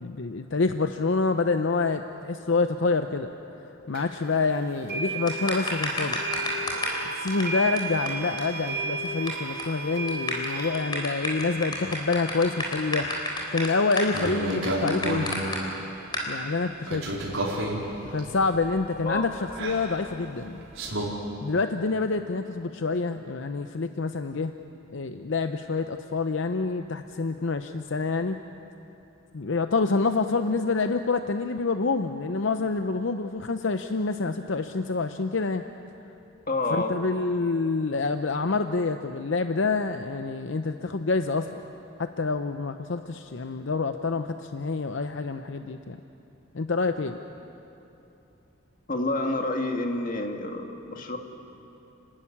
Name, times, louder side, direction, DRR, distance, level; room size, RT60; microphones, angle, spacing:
voice 1, 0.0-3.3 3.9-6.2 7.1-13.1 13.5-15.4 16.3-17.0 18.1-20.6 21.4-24.5 24.9-28.4 29.3-35.6 36.7-41.6 42.0-46.0 46.5-47.2, left 3 dB, 70° left, 8 dB, 0.7 m, -27 dB
sound 1, 3.9-4.0 4.9-15.9, right 3 dB, 50° right, 6.3 m, -35 dB
sound 2, 5.3-7.0 7.3-7.4 7.8-7.9 8.1-8.2 8.4-8.5 8.7-9.3 9.6-9.8 10.1-15.6 16.1-16.3, left 2 dB, 20° left, 3.8 m, -30 dB
sound 3, 14.1-15.4 16.9-21.1, right 1 dB, 85° right, 4.5 m, -31 dB
voice 2, 36.5-37.0 48.9-51.2, left 2 dB, 40° left, 3 dB, 1.9 m, -28 dB
30.0 x 13.0 x 9.9 m, 3.0 s
head